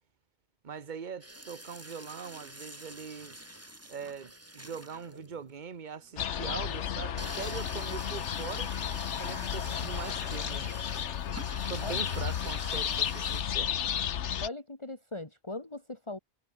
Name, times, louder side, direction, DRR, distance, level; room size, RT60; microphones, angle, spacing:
voice 1, 0.6-3.4 3.9-8.7 9.2-10.7 11.6-13.8, right 6 dB, 45° right, 1.3 m, -42 dB
sound 1, 1.2-13.4, right 1 dB, 10° right, 2.2 m, -47 dB
sound 2, 6.2-14.5, left 9 dB, 85° left, 1.2 m, -33 dB
voice 2, 14.4-16.2, left 2 dB, 25° left, 2.5 m, -39 dB
omnidirectional pair, 1.2 m